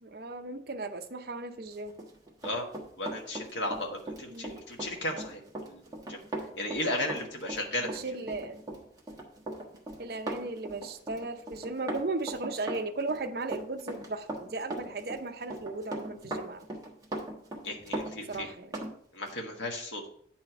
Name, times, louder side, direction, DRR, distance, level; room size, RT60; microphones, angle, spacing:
voice 1, 0.0-2.0 4.3-4.6 7.8-8.6 10.0-16.6 18.3-18.8, right 3 dB, 55° right, 7 dB, 0.7 m, -36 dB
Run, 1.9-18.9 19.3-19.4, right 1 dB, 20° right, 1.2 m, -39 dB
voice 2, 3.0-5.4 5.7-5.8 6.1-6.2 6.5-8.0 17.6-18.5 19.1-20.1, left 1 dB, 80° left, 2 dB, 1.6 m, -34 dB
9.5 x 4.4 x 4.5 m, 0.63 s
head